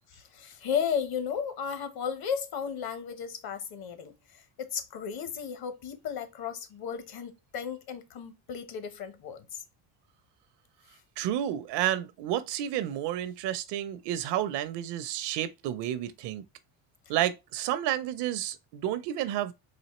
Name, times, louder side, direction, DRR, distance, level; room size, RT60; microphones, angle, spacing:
voice 1, 0.1-4.1 4.6-9.6, left 7 dB, 50° left, 1.0 m, -34 dB
voice 2, 11.2-16.4 17.1-19.5, right 12 dB, 65° right, 0.6 m, -30 dB
4.1 x 2.7 x 2.9 m
cardioid pair, 105°, 46 cm